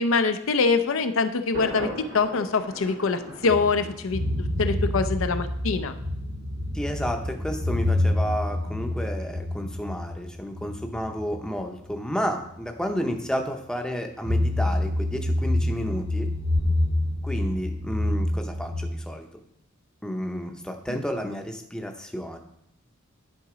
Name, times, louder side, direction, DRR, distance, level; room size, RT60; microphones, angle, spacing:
voice 1, 0.0-5.9 20.9-21.0, left 4 dB, 70° left, 9 dB, 0.5 m, -24 dB
Thunder, 1.5-4.5, right 1 dB, 85° right, 2.3 m, -39 dB
sound 1, 3.5-12.0 12.4-12.5 14.2-18.9, left 1 dB, 70° right, 1.6 m, -27 dB
voice 2, 6.7-16.3 17.2-19.3 20.0-22.4, equal, 5° left, 4 dB, 0.6 m, -31 dB
10.5 x 4.0 x 4.9 m, 0.72 s
head